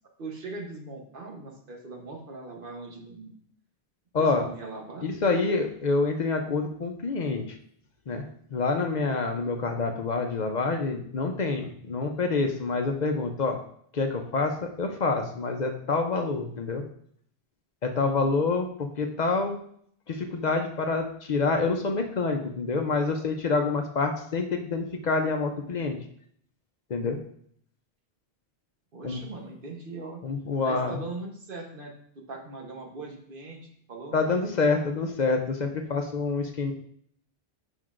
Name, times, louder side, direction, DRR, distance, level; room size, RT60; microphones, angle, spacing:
voice 1, 0.2-3.3 4.2-5.1 18.0-18.4 28.9-30.2 30.6-31.9 32.3-34.2, right 3 dB, 55° right, 2 dB, 1.1 m, -40 dB
voice 2, 5.0-7.6 8.1-8.2 8.5-13.6 13.9-16.8 17.8-19.6 20.1-26.0 26.9-27.2 29.0-29.2 30.2-31.0 34.1-36.7, left 3 dB, 50° left, 4 dB, 0.6 m, -27 dB
7.6 x 5.3 x 2.5 m, 0.65 s
omnidirectional pair, 1.1 m